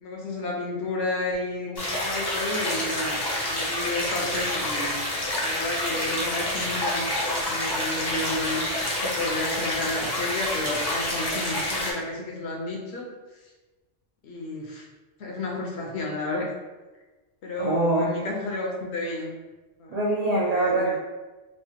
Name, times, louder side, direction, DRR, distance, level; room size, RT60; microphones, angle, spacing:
voice 1, 0.0-4.9 5.4-13.1 14.2-14.9 15.2-16.5 17.4-19.3 19.8-19.9 20.4-21.0, left 2 dB, 70° left, 0 dB, 0.9 m, -31 dB
sound 1, 1.8-11.9, left 1 dB, 30° left, 0.4 m, -28 dB
voice 2, 17.6-18.1 19.9-21.0, right 2 dB, 75° right, -6 dB, 0.3 m, -24 dB
3.2 x 2.1 x 2.7 m, 1.2 s
omnidirectional pair, 1.2 m